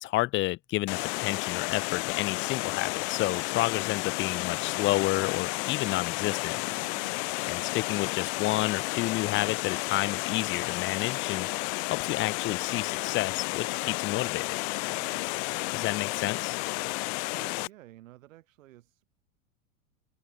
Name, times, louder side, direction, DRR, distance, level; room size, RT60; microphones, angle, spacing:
voice 1, 0.0-6.6 7.5-11.5 11.9-14.5 15.7-16.6, left 17 dB, 30° left, 0.5 m, -30 dB
Water, 0.9-17.7, left 36 dB, 55° left, 1.5 m, -32 dB
voice 2, 6.7-7.2 14.8-15.3 16.8-19.1, right 15 dB, 70° right, 5.1 m, -53 dB
hypercardioid pair, 90°, 41 cm